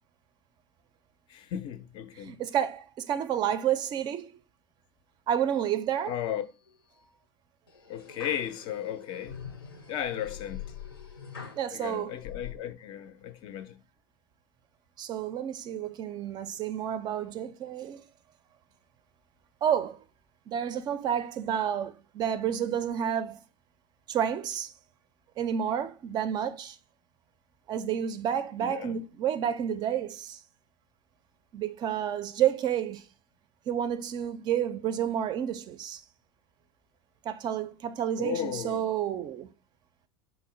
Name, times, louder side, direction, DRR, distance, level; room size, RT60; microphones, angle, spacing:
voice 1, 1.3-2.4 6.1-6.4 7.9-9.4 9.9-10.7 11.7-13.8 28.6-29.0 38.2-38.9, left 10 dB, 40° left, 0.4 m, -35 dB
voice 2, 2.2-4.4 5.3-6.2 11.6-12.1 15.0-18.0 19.6-20.0 20.5-23.4 24.1-24.7 25.4-26.8 27.7-30.4 31.5-33.1 33.7-36.0 37.2-39.5, right 9 dB, 35° right, 0.4 m, -30 dB
sound 1, 5.5-6.2 6.7-7.1 7.7-11.7 12.2-12.5, left 7 dB, 85° left, 0.7 m, -44 dB
4.0 x 2.0 x 3.8 m
figure-of-eight pair, 80°, 12 cm